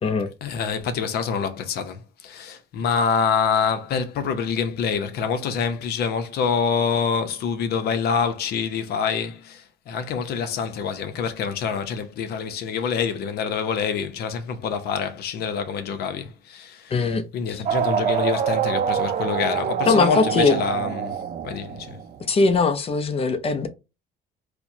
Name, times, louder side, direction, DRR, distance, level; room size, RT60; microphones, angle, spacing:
voice 1, 0.4-16.9 17.3-21.2 21.4-22.0, left 6 dB, 70° left, 0.7 m, -26 dB
voice 2, 16.9-17.6 19.9-20.6 22.3-23.7, left 4 dB, 35° left, 0.6 m, -21 dB
sound 1, 17.6-22.2, right 8 dB, 45° right, 0.4 m, -25 dB
4.4 x 2.2 x 2.7 m
cardioid pair, 110°, 17 cm